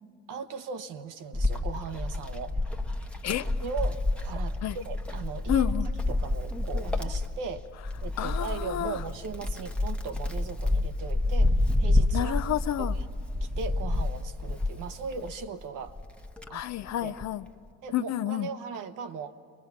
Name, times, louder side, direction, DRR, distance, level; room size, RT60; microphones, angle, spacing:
voice 1, 0.3-2.6 3.3-5.7 6.1-7.7 8.0-12.4 12.8-13.0 13.4-16.0 16.5-16.6 17.0-17.1 17.8-19.3, right 5 dB, 65° right, 8 dB, 1.2 m, -38 dB
Wind, 1.3-15.4 15.9-17.4, left 2 dB, 5° left, 1.0 m, -29 dB
voice 2, 5.5-5.9 8.2-9.0 12.1-12.9 16.5-17.4 17.9-18.5, left 12 dB, 50° left, 13 dB, 0.7 m, -29 dB
29.5 x 22.5 x 5.8 m, 2.2 s
hypercardioid pair, 70°, 34 cm